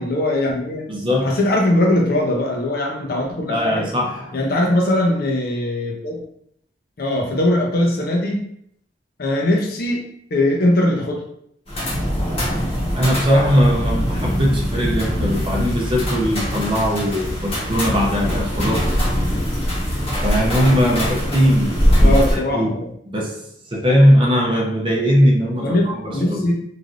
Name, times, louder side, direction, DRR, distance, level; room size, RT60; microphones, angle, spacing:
voice 1, 0.0-0.8 1.2-3.9 4.3-6.2 7.0-8.4 9.2-10.0 10.3-11.2 22.0-22.9 25.6-26.5, left 1 dB, 55° left, 0 dB, 0.6 m, -20 dB
voice 2, 0.9-1.4 3.5-4.3 12.9-18.9 20.2-21.7 22.0-22.7 23.1-26.4, equal, 30° right, -2 dB, 0.6 m, -19 dB
sound 1, 11.7-22.4, equal, 35° left, 1.0 m, -21 dB
3.2 x 2.6 x 2.4 m, 0.69 s
head